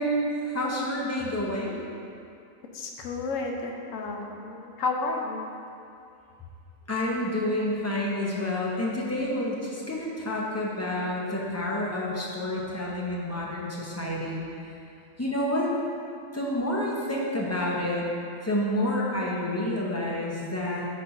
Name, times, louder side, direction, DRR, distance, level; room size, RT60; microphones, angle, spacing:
voice 1, 0.0-1.8 6.9-14.4 15.2-15.7 16.3-18.1 18.4-20.9, left 1 dB, 20° left, -4 dB, 0.4 m, -29 dB
voice 2, 2.7-5.5, left 3 dB, 75° left, 1 dB, 1.0 m, -31 dB
4.4 x 4.1 x 5.4 m, 2.5 s
omnidirectional pair, 1.4 m